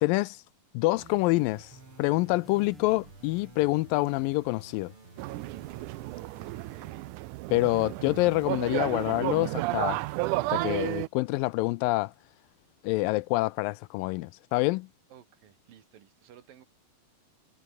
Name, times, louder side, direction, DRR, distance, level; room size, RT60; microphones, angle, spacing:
voice 1, 0.0-0.4 0.7-1.7 2.0-4.9 7.5-10.0 10.5-12.1 12.8-14.9, left 21 dB, 80° left, 2.2 m, -26 dB
sound 1, 1.0-6.9, right 3 dB, 35° right, 7.3 m, -52 dB
sound 2, 1.0-6.3, right 9 dB, 55° right, 3.2 m, -59 dB
sound 3, 5.2-11.1, right 19 dB, 90° right, 1.8 m, -32 dB
voice 2, 6.4-7.1 7.9-8.2 15.1-16.6, right 10 dB, 70° right, 3.7 m, -53 dB
omnidirectional pair, 4.2 m